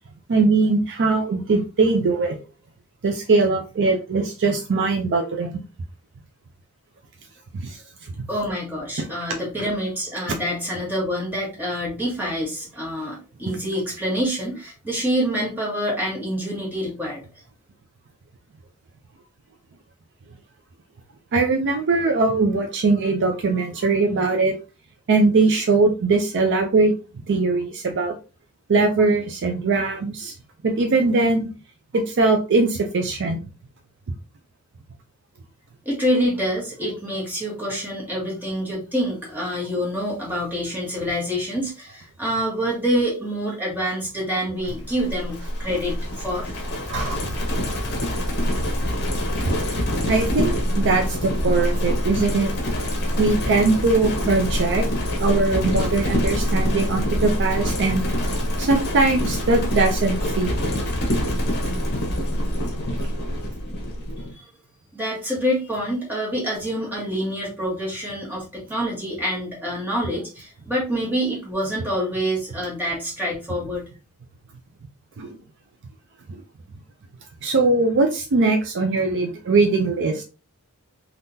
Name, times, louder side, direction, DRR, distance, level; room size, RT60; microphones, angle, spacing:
voice 1, 0.3-2.4 3.0-5.6 7.6-8.2 9.2-9.3 21.3-24.5 25.1-26.9 27.3-28.1 28.7-30.3 30.6-31.5 31.9-33.4 34.1-34.2 46.9-47.3 49.4-49.5 50.1-52.5 53.2-54.8 55.2-58.1 58.6-60.5 75.2-75.4 77.4-80.2, right 3 dB, 55° right, 4 dB, 0.4 m, -21 dB
voice 2, 8.3-17.2 35.8-46.6 64.3-64.5 64.9-73.9, equal, 10° right, -4 dB, 1.4 m, -26 dB
Livestock farm animals working animals, 44.7-64.3, equal, 50° left, 0.9 m, -25 dB
3.6 x 2.4 x 2.7 m, 0.32 s
head